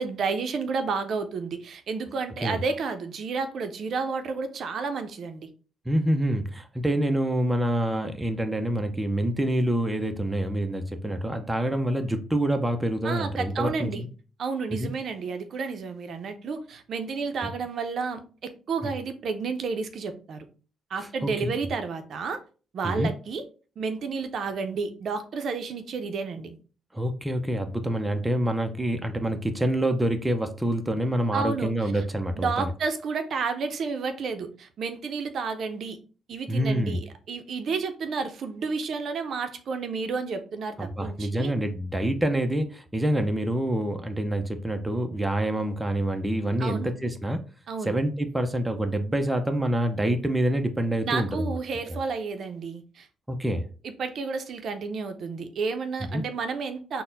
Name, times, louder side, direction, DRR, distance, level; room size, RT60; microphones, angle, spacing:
voice 1, 0.0-5.5 13.0-14.0 14.4-20.4 20.9-22.4 22.7-23.4 23.8-26.6 31.3-32.0 32.4-36.0 36.3-41.5 46.6-46.9 47.7-48.0 51.0-53.1 53.8-57.0, right 4 dB, 60° right, 8 dB, 0.5 m, -31 dB
voice 2, 5.9-14.1 14.7-14.9 17.4-17.5 18.8-18.9 21.2-21.5 22.8-23.1 26.9-32.7 36.5-37.0 40.8-47.4 47.9-51.5 51.9-52.0 53.3-53.7 56.1-56.2, right 1 dB, 10° right, 6 dB, 0.5 m, -26 dB
4.0 x 2.1 x 3.9 m, 0.37 s
cardioid pair, 90°, 0 cm